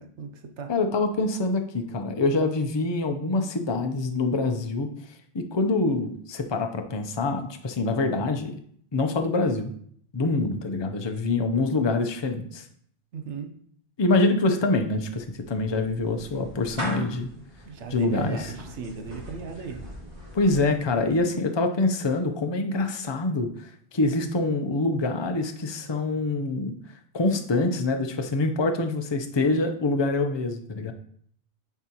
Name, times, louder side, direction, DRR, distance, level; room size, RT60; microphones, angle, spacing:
voice 1, 0.0-0.7 13.1-13.5 17.6-19.8, right 5 dB, 90° right, 5 dB, 1.1 m, -36 dB
voice 2, 0.7-4.9 5.3-8.5 8.9-9.7 10.1-12.6 14.0-17.3 17.9-18.5 20.3-26.7 27.1-30.9, left 2 dB, 30° left, 5 dB, 0.6 m, -25 dB
Clapping / Meow, 14.9-21.3, equal, 60° right, 2.5 m, -41 dB
10.0 x 4.6 x 2.9 m, 0.63 s
omnidirectional pair, 1.1 m